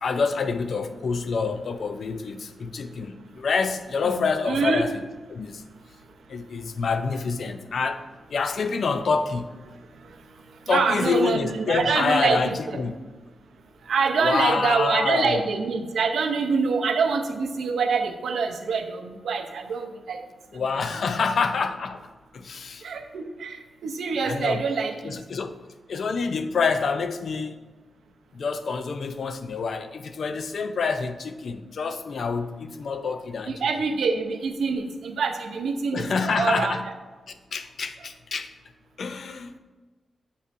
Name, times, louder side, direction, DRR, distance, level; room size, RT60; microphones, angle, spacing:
voice 1, 0.0-4.9 5.3-5.6 6.3-8.0 8.3-9.5 10.7-12.9 14.2-15.4 20.5-22.1 22.3-22.9 24.2-24.6 25.0-25.6 25.9-27.6 28.3-33.6 35.9-36.8 37.5-38.5 39.0-39.6, left 5 dB, 65° left, 9 dB, 0.4 m, -27 dB
voice 2, 4.0-4.8 10.0-10.2 10.7-12.5 13.9-20.2 22.8-25.2 33.5-36.8, right 5 dB, 85° right, 5 dB, 0.6 m, -25 dB
8.3 x 5.5 x 2.6 m, 1.3 s
wide cardioid pair, 110°, 0 cm